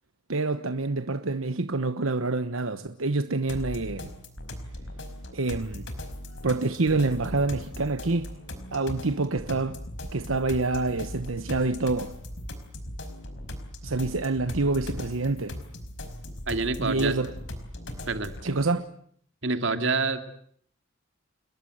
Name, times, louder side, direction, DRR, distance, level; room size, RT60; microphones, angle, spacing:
voice 1, 0.3-4.1 5.3-5.8 6.4-8.3 8.7-9.8 10.1-12.1 13.8-15.5 16.8-17.3 18.4-18.9, right 3 dB, 90° right, 1.2 m, -27 dB
sound 1, 3.5-18.5, left 1 dB, 65° left, 5.1 m, -39 dB
voice 2, 16.5-17.1 18.1-18.6 19.4-20.2, right 3 dB, 70° right, 2.6 m, -27 dB
29.5 x 21.5 x 8.0 m
head